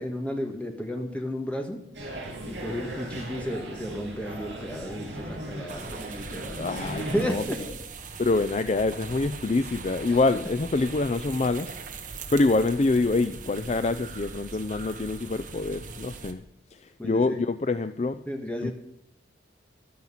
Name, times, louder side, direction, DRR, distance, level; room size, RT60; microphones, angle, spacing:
voice 1, 0.0-1.8 2.5-7.8 10.1-10.2 17.0-17.4 18.3-18.7, equal, 5° left, 3 dB, 1.9 m, -33 dB
sound 1, 1.9-7.6, right 1 dB, 70° right, 7.7 m, -37 dB
sound 2, 5.7-16.3, right 4 dB, 45° right, 1.5 m, -41 dB
voice 2, 6.6-7.4 8.2-11.7 12.3-16.4 16.7-18.2 18.6-18.7, left 3 dB, 35° left, 12 dB, 0.4 m, -26 dB
15.0 x 12.0 x 5.7 m, 0.75 s
head